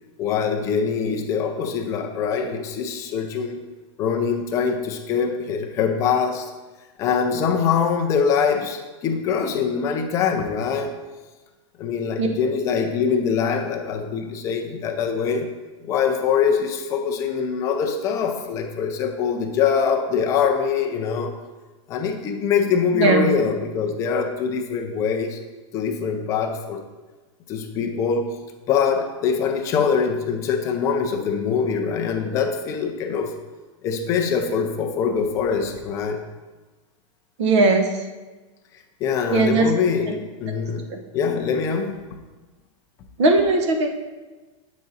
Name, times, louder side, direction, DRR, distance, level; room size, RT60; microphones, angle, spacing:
voice 1, 0.2-3.6 4.0-6.5 7.0-10.9 11.8-15.5 15.8-21.3 21.9-25.4 25.7-26.8 27.5-28.4 28.7-33.3 33.8-36.2 39.0-40.9 41.1-42.0, left 6 dB, 20° left, 3 dB, 0.4 m, -23 dB
voice 2, 22.9-23.3 37.4-38.0 39.3-39.8 40.1-40.2 40.9-41.0 43.2-44.0, right 3 dB, 60° right, 5 dB, 0.9 m, -19 dB
8.1 x 3.7 x 4.1 m, 1.2 s
supercardioid pair, 170°, 17 cm